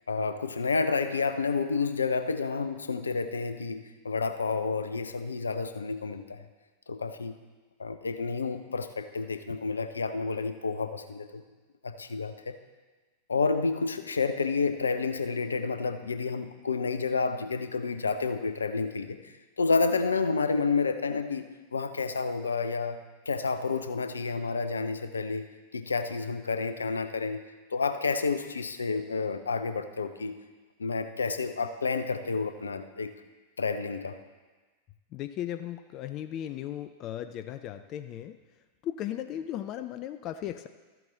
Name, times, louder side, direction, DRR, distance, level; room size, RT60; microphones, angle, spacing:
voice 1, 0.1-6.4 6.9-7.3 7.8-11.4 11.8-12.5 13.3-19.2 19.6-21.4 21.7-25.5 25.7-27.4 27.7-30.3 30.8-33.1 33.6-34.2, left 4 dB, 75° left, 9 dB, 0.6 m, -30 dB
voice 2, 35.1-38.4 38.8-40.7, left 11 dB, 35° left, 10 dB, 0.4 m, -36 dB
13.5 x 7.7 x 3.9 m, 1.3 s
figure-of-eight pair, 90°, 0 cm